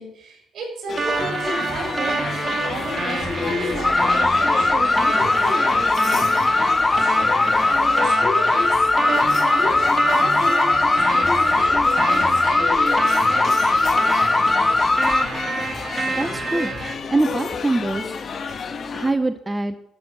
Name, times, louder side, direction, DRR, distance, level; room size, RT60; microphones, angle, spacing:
voice 1, 0.0-2.1 2.6-6.2 7.6-13.8, equal, 60° right, 1 dB, 6.6 m, -32 dB
sound 1, 0.9-19.1, left 5 dB, 50° left, 1.6 m, -31 dB
sound 2, 1.0-16.9, right 3 dB, 35° right, 2.0 m, -28 dB
sound 3, 3.8-15.3, left 3 dB, 25° left, 0.4 m, -19 dB
voice 2, 16.1-16.7 17.1-18.1 18.9-19.7, right 2 dB, 15° right, 9 dB, 0.8 m, -23 dB
13.5 x 7.1 x 7.8 m, 0.78 s
cardioid pair, 90°, 0 cm